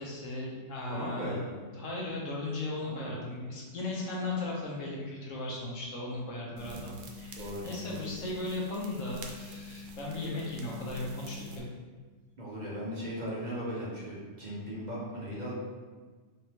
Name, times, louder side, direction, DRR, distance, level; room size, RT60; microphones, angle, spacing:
voice 1, 0.0-1.4 1.7-11.6, left 2 dB, 80° left, -3 dB, 1.2 m, -37 dB
voice 2, 0.9-1.5 2.9-3.1 7.4-8.0 12.4-15.6, equal, 40° right, -6 dB, 0.9 m, -38 dB
vinyl loop, 6.6-11.6, left 1 dB, 80° right, 1.0 m, -45 dB
3.7 x 3.6 x 2.9 m, 1.4 s
omnidirectional pair, 1.3 m